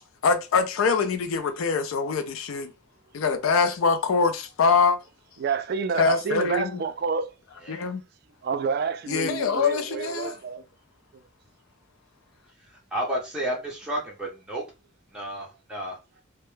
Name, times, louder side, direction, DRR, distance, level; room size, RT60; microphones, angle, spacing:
voice 1, 0.2-2.7 3.1-5.0 6.0-6.8 7.7-8.0 9.1-10.4, left 5 dB, 85° left, 0.4 m, -24 dB
voice 2, 5.4-7.3 8.4-10.6, right 5 dB, 50° right, 0.3 m, -28 dB
voice 3, 12.5-14.7 15.1-16.0, right 1 dB, 5° right, 0.7 m, -32 dB
2.1 x 2.1 x 3.1 m
head